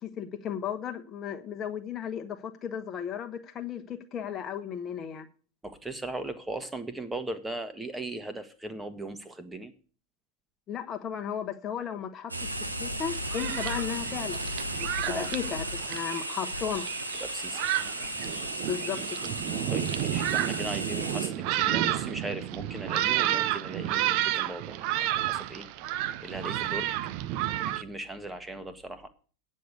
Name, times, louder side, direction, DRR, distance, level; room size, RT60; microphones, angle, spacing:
voice 1, 0.0-5.3 10.7-12.5 12.8-14.4 14.8-16.9 18.6-19.3, left 8 dB, 25° left, 1.1 m, -35 dB
voice 2, 5.6-9.7 15.0-15.3 17.2-17.7 19.7-25.7 26.2-26.9 27.4-29.1, right 2 dB, 10° right, 1.3 m, -38 dB
sound 1, 12.3-21.3, right 1 dB, 85° right, 1.3 m, -35 dB
Thunderstorm, 13.0-27.8, right 13 dB, 45° right, 0.6 m, -31 dB
9.3 x 6.5 x 8.2 m
figure-of-eight pair, 90°, 0 cm